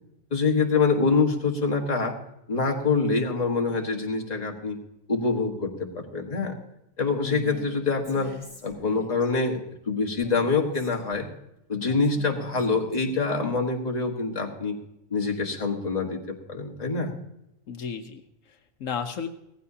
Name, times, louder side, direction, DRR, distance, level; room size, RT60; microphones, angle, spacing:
voice 1, 0.3-2.1 2.5-4.8 5.1-6.5 7.0-8.3 8.6-9.6 9.9-11.3 11.7-14.7 15.1-17.1, left 4 dB, 30° left, 1 dB, 1.6 m, -25 dB
voice 2, 7.1-7.7 17.7-19.3, left 6 dB, 80° left, 6 dB, 1.2 m, -35 dB
Female speech woman speaking, 7.3-7.7 8.0-9.3 10.2-11.3 11.8-13.4, equal, 10° left, 4.3 m, -47 dB
17.0 x 15.0 x 2.8 m, 0.84 s
omnidirectional pair, 1.3 m